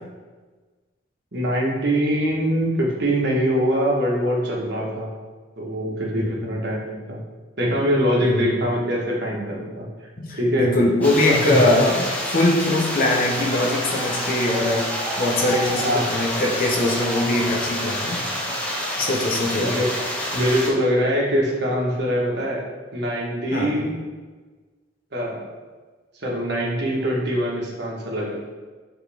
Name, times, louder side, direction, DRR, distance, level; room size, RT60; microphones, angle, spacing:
voice 1, 1.3-5.1 5.6-7.2 7.6-9.9 10.3-10.7 11.3-11.7 15.8-16.0 17.8-18.6 19.6-19.9 20.3-22.6 22.9-23.9 25.1-25.4 26.1-28.3, equal, 60° right, -3 dB, 1.4 m, -23 dB
voice 2, 10.2-14.9 15.2-18.2 19.0-19.8 23.5-23.7, left 1 dB, 50° left, -1 dB, 0.9 m, -22 dB
sound 1, 11.0-20.7, equal, 10° left, 1.1 m, -28 dB
sound 2, 13.2-18.1, right 1 dB, 5° right, 0.5 m, -35 dB
7.4 x 4.1 x 3.5 m, 1.4 s
head